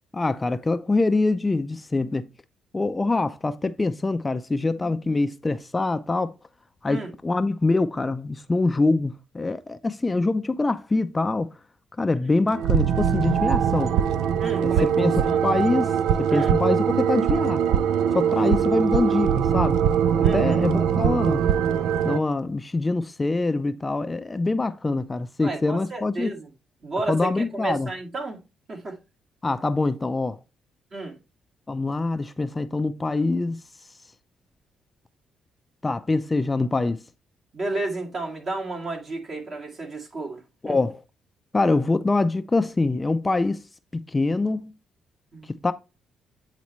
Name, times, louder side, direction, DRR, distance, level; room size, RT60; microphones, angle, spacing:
voice 1, 0.1-2.3 2.7-6.3 6.8-11.5 12.0-13.9 14.6-15.9 16.2-17.6 18.1-19.8 20.3-21.5 22.0-26.3 27.1-27.9 29.4-30.4 31.7-33.6 35.8-37.0 40.6-41.0 41.5-43.6 43.9-44.7 45.5-45.7, left 3 dB, 20° left, 0.4 m, -24 dB
sound 1, 12.5-22.2, right 8 dB, 85° right, 0.3 m, -22 dB
voice 2, 14.4-15.4 16.3-16.5 18.9-19.1 20.2-20.7 25.4-26.5 26.8-28.4 28.7-29.0 30.9-31.2 37.5-40.8 45.3-45.5, right 2 dB, 45° right, 2.0 m, -32 dB
8.4 x 4.1 x 3.1 m
cardioid pair, 90°, 0 cm